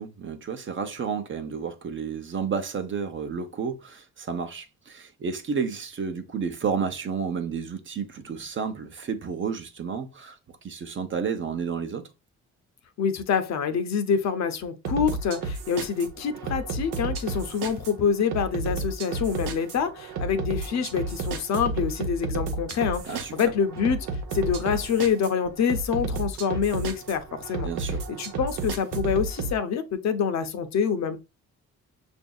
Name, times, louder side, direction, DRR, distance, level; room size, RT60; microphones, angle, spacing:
voice 1, 0.0-12.1 23.1-23.5 27.6-28.0, right 6 dB, 40° right, 0.8 m, -31 dB
voice 2, 13.0-27.7 28.1-31.2, left 6 dB, 65° left, 0.7 m, -26 dB
sound 1, 14.8-29.5, right 3 dB, 90° right, 0.8 m, -32 dB
6.1 x 2.6 x 2.3 m
cardioid pair, 90°, 30 cm